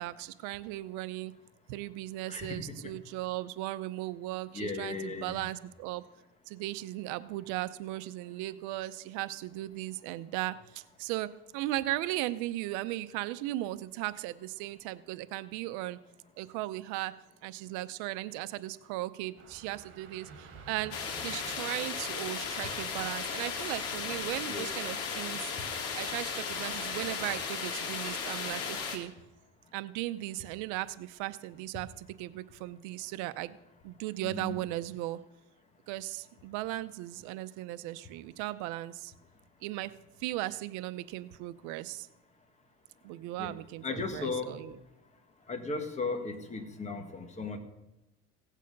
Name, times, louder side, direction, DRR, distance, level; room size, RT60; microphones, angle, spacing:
voice 1, 0.0-1.3 1.7-6.1 6.5-16.0 16.4-25.5 25.9-29.1 29.7-33.6 33.8-35.2 35.9-39.1 39.6-42.1 43.0-44.7, right 16 dB, 90° right, 14 dB, 0.7 m, -37 dB
voice 2, 2.3-2.9 4.5-5.5 24.5-24.9 34.2-34.5 43.4-43.5 43.8-44.5 45.5-47.6, left 3 dB, 25° left, 6 dB, 1.7 m, -36 dB
sound 1, 19.4-27.5, right 4 dB, 45° right, 4.5 m, -53 dB
sound 2, 20.9-29.0, left 6 dB, 55° left, 2.2 m, -36 dB
16.5 x 9.2 x 5.3 m, 0.96 s
cardioid pair, 140°, 29 cm